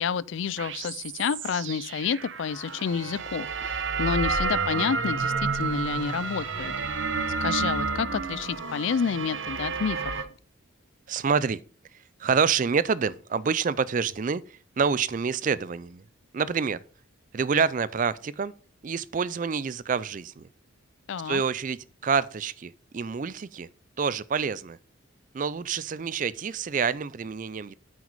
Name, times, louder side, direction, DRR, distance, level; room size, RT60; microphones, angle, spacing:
voice 1, 0.0-6.7 7.4-10.2 21.1-21.4, left 6 dB, 65° left, 0.4 m, -29 dB
sound 1, 0.6-10.2, right 4 dB, 65° right, 0.9 m, -30 dB
voice 2, 11.1-11.6 12.2-16.0 16.3-16.8 17.3-18.5 18.8-20.5 21.2-23.7 24.0-24.8 25.3-27.7, right 5 dB, 40° right, 0.4 m, -27 dB
8.9 x 6.3 x 5.3 m
head